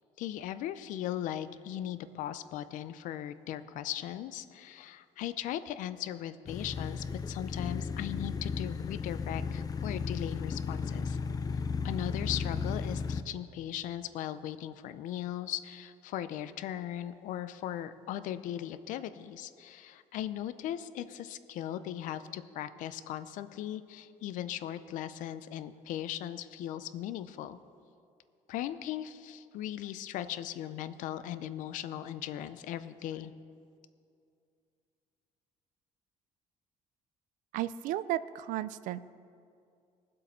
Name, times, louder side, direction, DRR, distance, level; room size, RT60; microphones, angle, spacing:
voice 1, 0.2-11.2 11.8-27.6 28.5-33.3, left 11 dB, 75° left, 13 dB, 0.6 m, -38 dB
sound 1, 6.5-13.2, left 5 dB, 30° left, 0.5 m, -35 dB
voice 2, 37.5-39.0, right 13 dB, 75° right, 15 dB, 0.4 m, -34 dB
19.5 x 7.7 x 4.3 m, 2.4 s
cardioid pair, 100°, 13 cm